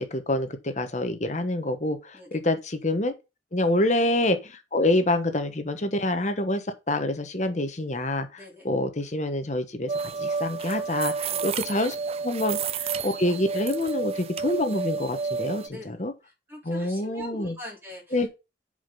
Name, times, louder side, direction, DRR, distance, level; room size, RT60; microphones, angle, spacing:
voice 1, 0.0-3.1 3.5-8.3 8.6-9.9 10.2-12.0 12.2-16.1 16.6-17.5 18.1-18.3, left 1 dB, 40° left, 1.2 m, -26 dB
voice 2, 8.4-8.7 11.3-11.4 15.7-18.3, left 1 dB, 10° right, 3.8 m, -43 dB
sound 1, 9.9-15.7, right 5 dB, 35° right, 0.4 m, -30 dB
7.3 x 5.1 x 5.4 m
head